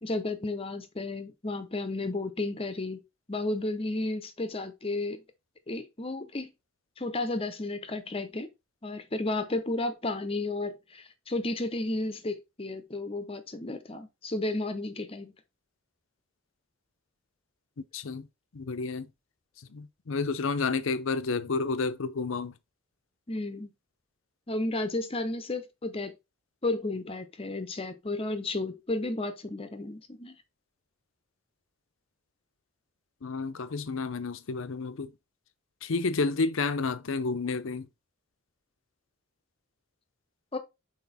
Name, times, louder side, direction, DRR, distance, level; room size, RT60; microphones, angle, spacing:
voice 1, 0.0-3.0 3.3-5.2 5.7-6.5 7.0-8.5 8.8-15.3 23.3-23.7 24.5-26.2 26.6-30.4 40.5-40.6, left 2 dB, 25° left, 0.8 m, -33 dB
voice 2, 17.9-18.3 18.5-19.1 19.6-22.5 33.2-35.1 35.8-37.9, left 4 dB, 70° left, 0.6 m, -30 dB
6.2 x 4.4 x 4.1 m
head